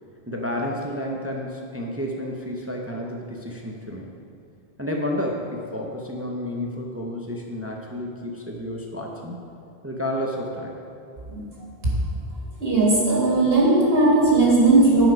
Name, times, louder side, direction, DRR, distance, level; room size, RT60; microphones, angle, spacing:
voice 1, 0.3-4.1 4.8-9.4 9.8-10.7, left 1 dB, 15° right, 0 dB, 0.6 m, -30 dB
voice 2, 12.6-15.1, right 2 dB, 65° right, -5 dB, 2.1 m, -17 dB
9.4 x 4.9 x 5.2 m, 2.5 s
omnidirectional pair, 1.1 m